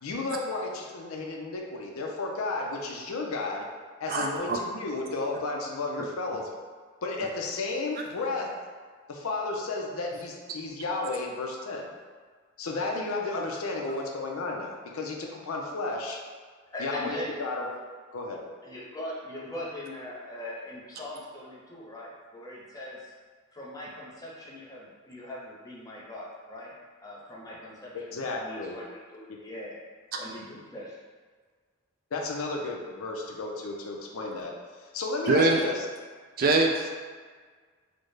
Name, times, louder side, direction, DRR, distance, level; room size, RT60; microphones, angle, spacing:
voice 1, 0.0-3.6 4.0-6.5 7.0-8.5 9.1-11.9 12.6-16.2 16.8-17.7 18.1-18.4 27.9-28.7 32.1-34.5 34.9-35.7, left 3 dB, 85° left, 0 dB, 0.5 m, -33 dB
voice 2, 4.1-4.6 35.3-35.6 36.4-36.9, right 2 dB, 45° right, 2 dB, 0.3 m, -23 dB
voice 3, 16.7-17.3 18.6-23.1 23.5-26.7 27.0-29.8 30.2-31.0, left 1 dB, 15° left, -5 dB, 0.6 m, -41 dB
3.9 x 2.1 x 3.2 m, 1.5 s
head